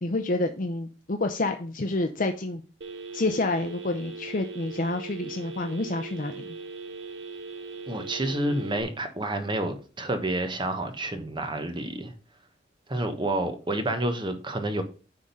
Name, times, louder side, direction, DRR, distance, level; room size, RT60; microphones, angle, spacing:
voice 1, 0.0-2.6 3.1-6.5, left 2 dB, 40° left, 0.6 m, -28 dB
Telephone, 2.8-8.8, right 4 dB, 65° right, 0.9 m, -40 dB
voice 2, 7.9-12.1 12.9-14.8, right 1 dB, 25° right, 1.1 m, -29 dB
10.5 x 3.7 x 5.5 m
head